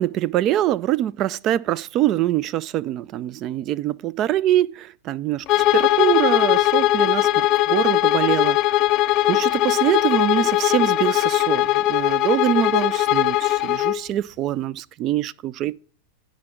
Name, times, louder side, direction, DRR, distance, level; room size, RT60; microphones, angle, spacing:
voice 1, 0.0-8.8 9.3-15.8, right 13 dB, 35° right, 0.4 m, -24 dB
Bowed string instrument, 5.5-14.0, left 16 dB, 40° left, 0.3 m, -19 dB
9.5 x 5.1 x 7.1 m
figure-of-eight pair, 90°, 0 cm